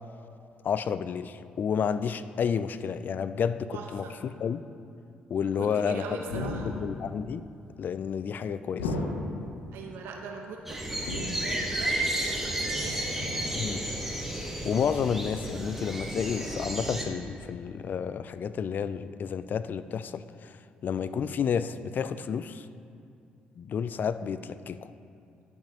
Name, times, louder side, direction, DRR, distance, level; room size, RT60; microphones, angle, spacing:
voice 1, 0.6-4.6 5.3-6.0 6.3-7.4 7.8-9.0 13.5-13.9 14.4-20.6 20.8-22.7 23.6-24.9, left 7 dB, 50° left, 14 dB, 0.3 m, -31 dB
voice 2, 3.7-4.1 5.4-6.8 9.7-13.1, right 5 dB, 70° right, 1 dB, 1.1 m, -41 dB
sound 1, 6.3-7.1 8.8-9.6 11.0-11.8 13.2-13.8 15.3-15.5, left 2 dB, 90° left, 0.7 m, -34 dB
sound 2, 10.7-17.0, right 1 dB, 5° right, 1.5 m, -32 dB
14.0 x 5.8 x 2.9 m, 2.5 s
hypercardioid pair, 50°, 4 cm